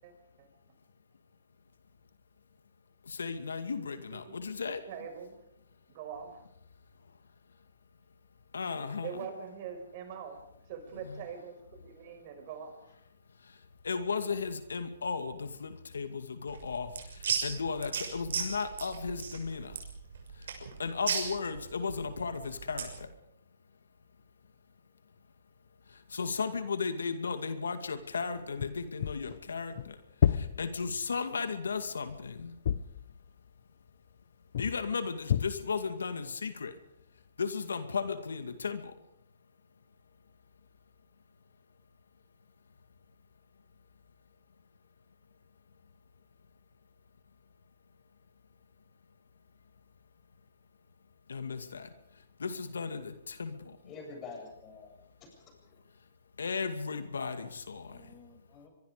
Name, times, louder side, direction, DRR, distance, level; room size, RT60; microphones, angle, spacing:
voice 1, 3.1-4.8 8.5-9.1 11.0-11.2 13.8-16.9 17.4-19.7 20.8-22.9 26.1-30.0 30.3-32.5 34.6-36.7 37.4-38.9 51.3-51.9 52.4-53.8 56.4-58.0, left 5 dB, 90° left, 9 dB, 2.3 m, -35 dB
voice 2, 4.9-5.4 5.9-6.4 9.0-10.4 10.7-12.8, right 7 dB, 40° right, 6 dB, 5.6 m, -43 dB
sound 1, 16.5-23.0, right 6 dB, 75° right, 6.3 m, -36 dB
sound 2, 28.4-31.3 31.7-33.5 34.5-35.0 35.3-35.9, left 9 dB, 60° left, 1.1 m, -32 dB
voice 3, 53.9-54.9 57.8-58.7, left 4 dB, 25° left, 3 dB, 7.9 m, -47 dB
24.5 x 22.5 x 5.1 m, 0.75 s
hypercardioid pair, 145°, 0 cm